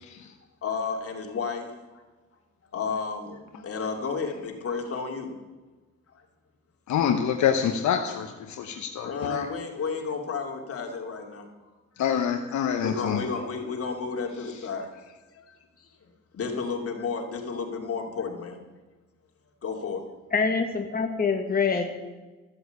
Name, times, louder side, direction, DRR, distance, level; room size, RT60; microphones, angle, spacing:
voice 1, 0.6-2.0 2.7-5.3 9.0-11.5 12.8-15.0 15.3-15.9 16.3-18.6 19.6-20.0, left 5 dB, 50° left, 2 dB, 2.8 m, -32 dB
voice 2, 6.9-9.5 12.0-13.2, left 8 dB, 70° left, 4 dB, 1.1 m, -26 dB
voice 3, 20.3-22.0, left 5 dB, 30° left, 3 dB, 1.5 m, -25 dB
14.5 x 7.9 x 8.2 m, 1.2 s
cardioid pair, 90°, 30 cm